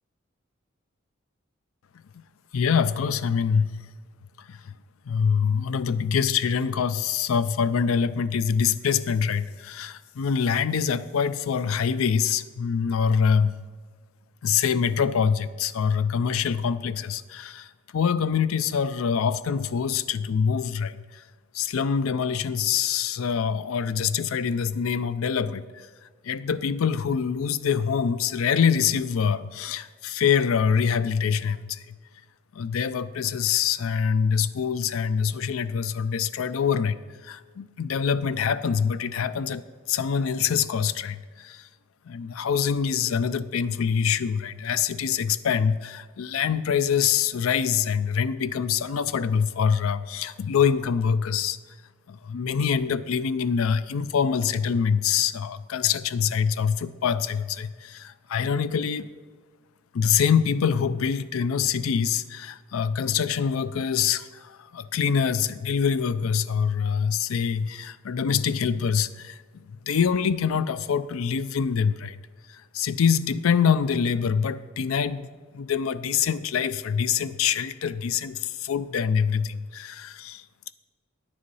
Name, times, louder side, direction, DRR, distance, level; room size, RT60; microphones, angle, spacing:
voice 1, 2.5-3.9 4.5-4.6 5.1-13.5 14.4-21.2 21.5-25.9 26.2-32.0 32.5-37.0 37.2-41.7 42.1-51.6 52.1-59.1 59.9-69.4 69.7-72.2 72.5-75.3 75.5-80.4, left 7 dB, 90° left, 14 dB, 0.4 m, -25 dB
9.8 x 6.8 x 5.4 m, 1.5 s
head